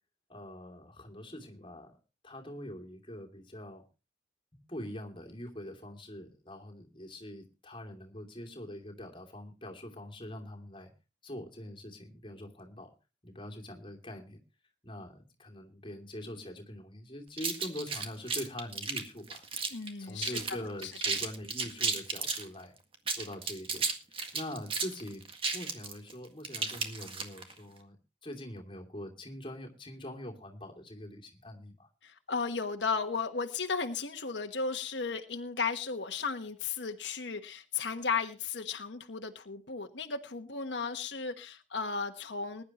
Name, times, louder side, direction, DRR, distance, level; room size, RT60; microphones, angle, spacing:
voice 1, 0.3-2.0 2.2-3.8 4.5-10.9 11.2-12.9 13.2-14.4 14.8-19.4 20.0-22.7 23.1-23.9 24.3-28.0 28.2-31.9, left 1 dB, 25° left, 0 dB, 2.7 m, -44 dB
sound 1, 17.4-19.9 20.2-20.5 20.8-22.5 22.9-27.5, right 5 dB, 30° right, 1.8 m, -33 dB
voice 2, 19.7-20.4 20.8-20.9 32.0-42.6, left 5 dB, 85° left, 5 dB, 1.2 m, -35 dB
20.5 x 10.5 x 3.0 m, 0.29 s
head